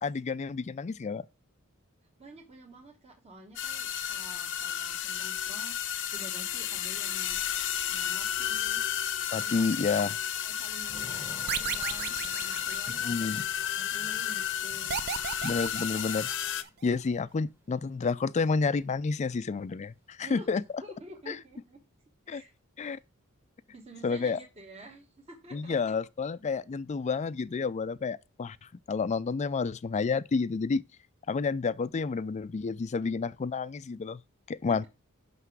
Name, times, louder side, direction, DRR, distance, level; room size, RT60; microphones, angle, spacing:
voice 1, 0.0-1.2 9.3-10.2 13.0-13.4 15.4-16.3 16.8-20.6 21.3-21.4 22.3-22.4 22.8-23.0 24.0-24.4 25.5-28.6 28.9-30.8 31.3-34.2 34.5-34.9, left 4 dB, 30° left, 0.3 m, -30 dB
voice 2, 2.2-7.4 7.9-8.8 9.4-9.7 10.4-15.0 20.2-20.5 20.8-21.8 22.3-22.5 22.9-23.0 23.7-25.8, right 1 dB, 30° right, 1.2 m, -49 dB
sound 1, 3.6-16.6, left 10 dB, 60° left, 0.7 m, -32 dB
Thunder / Rain, 10.8-18.7 19.0-19.1 19.4-20.7, equal, 10° right, 1.2 m, -54 dB
sound 2, 11.5-13.4 14.9-16.7, right 8 dB, 50° right, 0.6 m, -35 dB
5.9 x 5.8 x 4.7 m
head